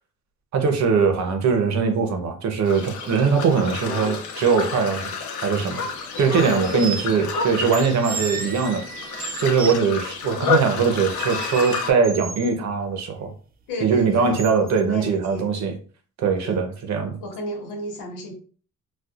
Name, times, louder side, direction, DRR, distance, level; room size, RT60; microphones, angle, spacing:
voice 1, 0.5-5.1 5.4-5.8 6.2-8.9 9.4-13.3 13.8-15.7 16.2-17.2, right 5 dB, 65° right, 0.8 m, -21 dB
sound 1, 2.6-11.9, left 4 dB, 75° left, 0.8 m, -30 dB
sound 2, 5.7-5.8 6.3-7.0 7.7-9.8 11.2-12.5 14.4-14.8, right 6 dB, 30° right, 0.4 m, -33 dB
voice 2, 6.4-7.1 13.7-14.4 14.9-15.5 16.4-16.6 17.2-18.3, left 1 dB, 90° left, 1.2 m, -33 dB
4.3 x 2.3 x 2.4 m
cardioid pair, 90°, 30 cm